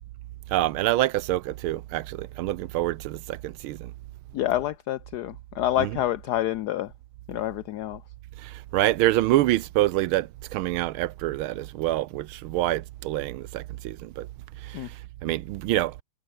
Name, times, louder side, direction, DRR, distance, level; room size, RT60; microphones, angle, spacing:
voice 1, 0.5-3.8 5.8-5.9 8.7-10.3 10.5-14.3 15.2-15.9, right 15 dB, 85° right, 1.5 m, -26 dB
voice 2, 4.3-6.9 7.3-8.0 14.7-14.9, left 13 dB, 80° left, 0.9 m, -27 dB
omnidirectional pair, 2.2 m